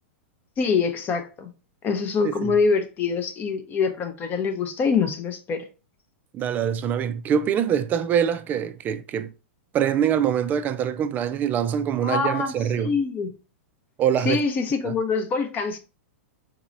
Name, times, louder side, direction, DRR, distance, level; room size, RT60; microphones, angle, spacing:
voice 1, 0.6-1.5 1.8-5.7 12.0-13.3 14.3-15.8, left 5 dB, 30° left, 0.6 m, -24 dB
voice 2, 2.2-2.6 6.3-9.3 9.7-12.9 14.0-14.4 14.8-14.9, right 9 dB, 25° right, 0.4 m, -24 dB
4.0 x 2.8 x 2.5 m
hypercardioid pair, 105°, 7 cm